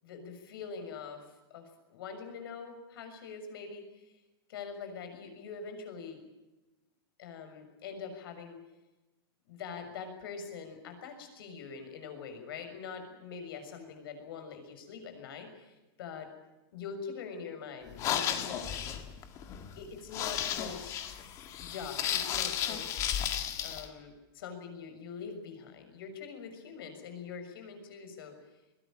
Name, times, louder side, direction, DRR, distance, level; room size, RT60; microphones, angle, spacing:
voice 1, 0.0-4.2 4.5-6.2 7.2-8.6 9.5-16.3 16.7-18.6 19.8-20.9 21.6-23.0 23.6-28.4, left 6 dB, 65° left, 7 dB, 6.5 m, -44 dB
sound 1, 17.9-23.9, left 9 dB, 25° left, 1.8 m, -34 dB
21.5 x 18.0 x 9.0 m, 1.1 s
supercardioid pair, 175°, 13 cm